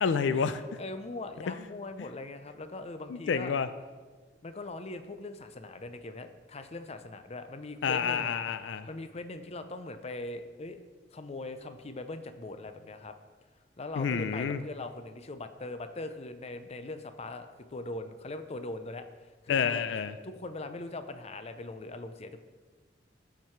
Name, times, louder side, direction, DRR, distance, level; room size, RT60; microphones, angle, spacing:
voice 1, 0.0-0.6 3.1-3.7 7.8-8.9 14.0-14.6 19.5-20.1, left 6 dB, 85° left, 12 dB, 0.4 m, -29 dB
voice 2, 0.8-3.5 4.4-8.3 8.9-10.8 11.1-13.1 13.8-19.8 20.2-22.4, left 2 dB, 35° left, 9 dB, 0.5 m, -41 dB
13.0 x 4.7 x 4.5 m, 1.4 s
head